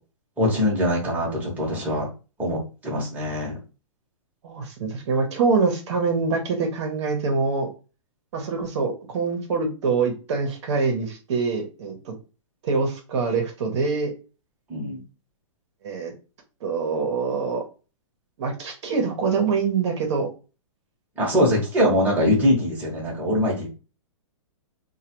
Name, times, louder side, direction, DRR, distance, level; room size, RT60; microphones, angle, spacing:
voice 1, 0.4-2.1 2.4-3.6 14.7-15.0 21.2-23.7, left 1 dB, 10° right, -4 dB, 1.0 m, -23 dB
voice 2, 4.4-7.7 8.3-12.1 12.6-14.1 15.8-16.1 16.6-17.6 18.4-20.3 21.8-21.9, right 4 dB, 55° right, 3 dB, 0.9 m, -25 dB
3.1 x 2.3 x 2.9 m, 0.33 s
hypercardioid pair, 140°, 17 cm